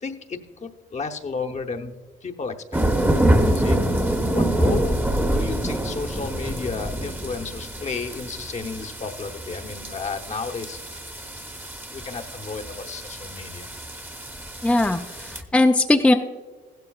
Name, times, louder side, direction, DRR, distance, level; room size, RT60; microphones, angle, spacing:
voice 1, 0.0-2.7 3.5-3.8 4.3-11.0 11.9-13.7, left 4 dB, 35° left, 5 dB, 0.8 m, -33 dB
sound 1, 2.7-15.4, right 1 dB, 10° right, 0.9 m, -26 dB
voice 2, 3.4-4.1 14.6-16.1, left 2 dB, 5° left, 4 dB, 0.4 m, -20 dB
15.0 x 12.0 x 2.3 m, 1.3 s
cardioid pair, 90°, 20 cm